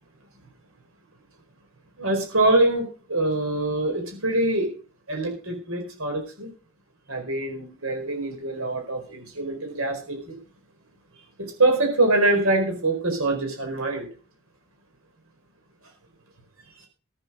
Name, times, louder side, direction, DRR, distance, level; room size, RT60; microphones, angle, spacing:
voice 1, 2.0-4.7 5.1-6.5 7.1-10.4 11.4-14.1, right 2 dB, 70° right, 3 dB, 4.6 m, -24 dB
15.0 x 9.9 x 5.0 m, 0.37 s
head